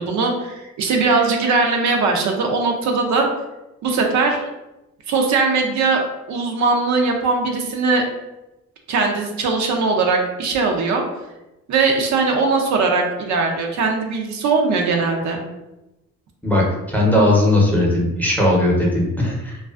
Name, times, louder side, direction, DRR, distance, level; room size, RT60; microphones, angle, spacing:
voice 1, 0.0-3.3 3.8-4.4 5.1-6.0 6.3-8.1 8.9-11.0 11.7-15.4, right 4 dB, 70° right, 2 dB, 0.5 m, -20 dB
voice 2, 16.4-19.6, left 1 dB, 5° left, -3 dB, 0.6 m, -18 dB
2.3 x 2.3 x 2.3 m, 0.98 s
cardioid pair, 90°, 30 cm